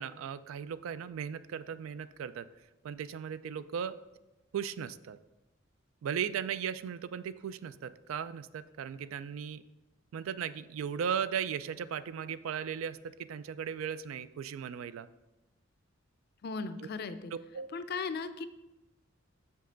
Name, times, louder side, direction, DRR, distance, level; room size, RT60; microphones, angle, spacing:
voice 1, 0.0-2.5 2.8-4.0 4.5-5.2 6.0-9.6 10.1-15.1 17.3-17.7, right 8 dB, 80° right, 15 dB, 0.3 m, -37 dB
voice 2, 16.4-17.3 17.7-18.5, left 4 dB, 50° left, 11 dB, 0.4 m, -37 dB
6.7 x 5.3 x 3.8 m, 1.0 s
head